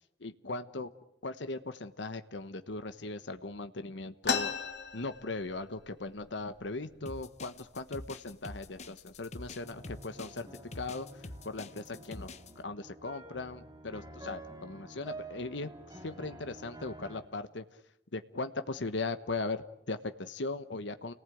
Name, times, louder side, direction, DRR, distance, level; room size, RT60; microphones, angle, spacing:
voice 1, 0.2-0.9 1.2-4.5 4.9-10.5 10.7-17.6 18.1-21.1, left 3 dB, 85° left, 10 dB, 1.2 m, -39 dB
sound 1, 4.2-5.8 6.2-6.3 6.5-7.2 7.8-7.9 8.6-8.8 9.3-9.7, left 5 dB, 70° left, 2.6 m, -35 dB
sound 2, 7.1-12.5, left 2 dB, 40° left, 1.2 m, -45 dB
sound 3, 9.6-17.2, right 2 dB, 20° right, 4.1 m, -49 dB
30.0 x 19.0 x 9.3 m, 0.81 s
head